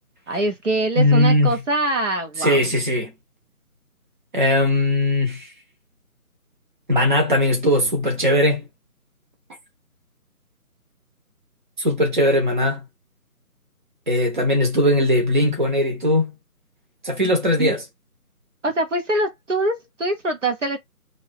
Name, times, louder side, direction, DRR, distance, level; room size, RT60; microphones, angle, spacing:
voice 1, 0.3-2.6 17.6-17.8 18.6-20.8, right 2 dB, 55° right, 1.1 m, -24 dB
voice 2, 1.0-1.5 2.4-3.1 4.3-5.5 6.9-8.6 11.8-12.8 14.1-16.3 17.0-17.8, left 1 dB, 30° right, 1.0 m, -19 dB
2.6 x 2.2 x 3.4 m
figure-of-eight pair, 165°, 45 cm